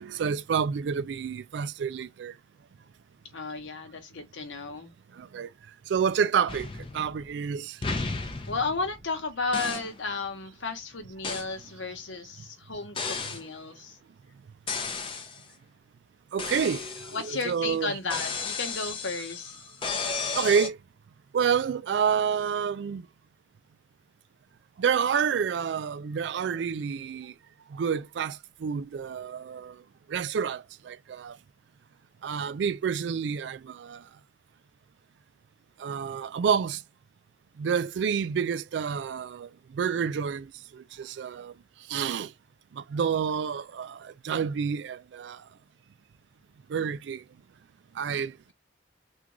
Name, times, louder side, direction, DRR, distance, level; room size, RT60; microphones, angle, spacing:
voice 1, 0.0-2.3 5.2-5.5 5.9-7.8 16.3-17.9 20.3-20.8 21.3-23.0 24.8-27.3 27.7-29.8 30.1-31.4 32.2-34.0 35.8-36.8 37.6-41.5 41.9-42.3 42.7-45.4 46.7-47.2 48.0-48.3, right 7 dB, 70° right, 0.3 m, -29 dB
voice 2, 3.3-4.9 8.5-14.0 17.1-19.6, left 4 dB, 85° left, 1.0 m, -33 dB
sound 1, 6.5-7.4 7.8-9.1 9.5-10.0 11.2-11.5 12.9-13.5 14.7-15.4 16.4-17.5 18.1-20.7, left 4 dB, 25° left, 0.5 m, -34 dB
3.6 x 2.4 x 3.0 m
head